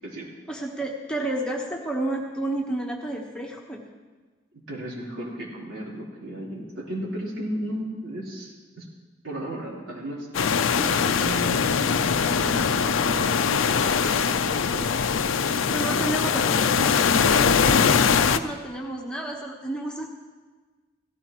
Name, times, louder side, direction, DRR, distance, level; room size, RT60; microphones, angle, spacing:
voice 1, 0.5-3.8 15.7-20.1, right 1 dB, 5° left, -1 dB, 1.1 m, -31 dB
voice 2, 4.5-8.9 9.2-15.0 18.2-18.3, right 1 dB, 80° right, -5 dB, 3.8 m, -35 dB
sound 1, 10.3-18.4, left 6 dB, 80° left, 0.5 m, -22 dB
16.5 x 15.0 x 3.0 m, 1.3 s
head